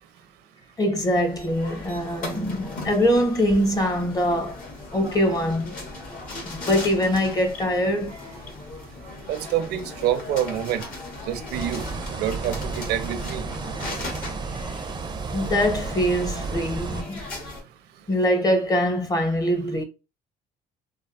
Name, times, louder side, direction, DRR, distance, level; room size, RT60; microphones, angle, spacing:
voice 1, 0.8-4.6 4.9-5.7 6.4-8.3 15.3-17.2 18.1-19.8, equal, 20° left, 0.7 m, -23 dB
sound 1, 1.0-17.6, left 2 dB, 55° left, 1.3 m, -38 dB
voice 2, 9.3-10.8 11.3-11.8 12.2-13.4, right 11 dB, 80° right, 0.6 m, -27 dB
sound 2, 11.5-17.0, right 4 dB, 25° right, 0.4 m, -32 dB
3.2 x 2.0 x 2.4 m
cardioid pair, 110°, 17 cm